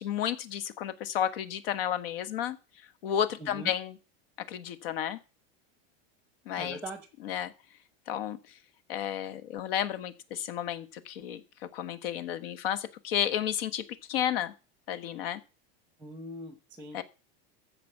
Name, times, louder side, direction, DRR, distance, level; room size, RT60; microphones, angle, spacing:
voice 1, 0.0-2.6 3.0-3.9 4.4-5.2 6.4-6.8 7.2-7.5 8.1-8.4 8.9-11.4 11.7-14.5 14.9-15.4 16.9-17.0, left 10 dB, 65° left, 13 dB, 1.5 m, -32 dB
voice 2, 3.4-3.7 6.6-7.1 16.0-17.0, right 1 dB, 5° right, 10 dB, 0.9 m, -42 dB
14.5 x 5.3 x 7.3 m, 0.33 s
supercardioid pair, 170°, 31 cm